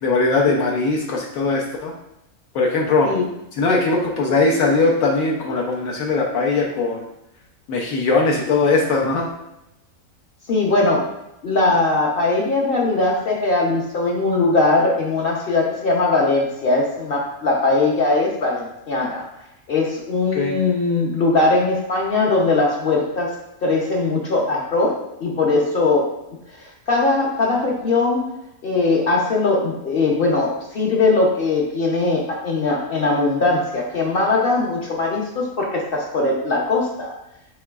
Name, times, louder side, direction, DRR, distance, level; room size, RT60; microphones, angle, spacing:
voice 1, 0.0-1.9 2.5-3.1 3.6-7.0 7.7-9.3 20.3-20.6, left 3 dB, 75° left, -1 dB, 1.1 m, -20 dB
voice 2, 10.5-11.1 11.4-19.3 19.7-26.1 26.6-28.3 28.6-37.2, left 3 dB, 55° left, -1 dB, 0.7 m, -20 dB
6.6 x 3.1 x 2.3 m, 0.87 s
omnidirectional pair, 1.5 m